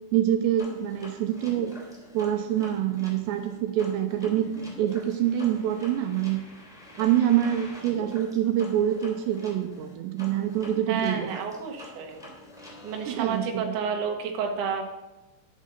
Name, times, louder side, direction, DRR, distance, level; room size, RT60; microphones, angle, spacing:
voice 1, 0.1-1.8 2.1-4.5 4.8-6.4 7.0-11.3 13.1-13.7, right 11 dB, 85° right, 6 dB, 2.8 m, -26 dB
sound 1, 0.6-13.4, left 1 dB, ahead, 2.5 m, -45 dB
voice 2, 10.9-12.2 12.8-14.8, right 6 dB, 60° right, 2 dB, 2.4 m, -30 dB
11.5 x 6.5 x 6.7 m, 1.0 s
omnidirectional pair, 5.1 m